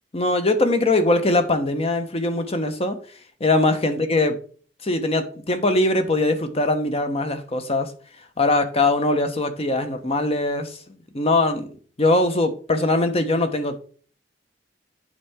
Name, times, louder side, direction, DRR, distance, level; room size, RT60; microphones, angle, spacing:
voice 1, 0.1-3.0 3.4-4.3 4.8-7.9 8.4-10.8 11.1-11.7 12.0-13.8, left 2 dB, 35° left, 1.0 m, -21 dB
8.5 x 5.5 x 3.6 m
head